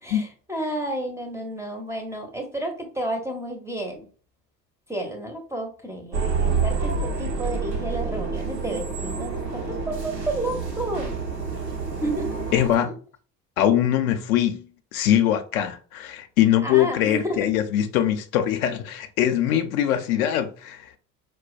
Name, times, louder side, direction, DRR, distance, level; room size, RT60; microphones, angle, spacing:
voice 1, 0.0-4.0 4.9-11.1 12.0-12.9 16.6-17.5, right 1 dB, 5° right, 0.5 m, -31 dB
sound 1, 6.1-12.8, right 4 dB, 85° right, 0.7 m, -28 dB
voice 2, 12.5-12.9 13.6-14.7 14.9-20.9, left 11 dB, 60° left, 0.5 m, -22 dB
4.3 x 2.2 x 2.3 m
figure-of-eight pair, 65°, 48 cm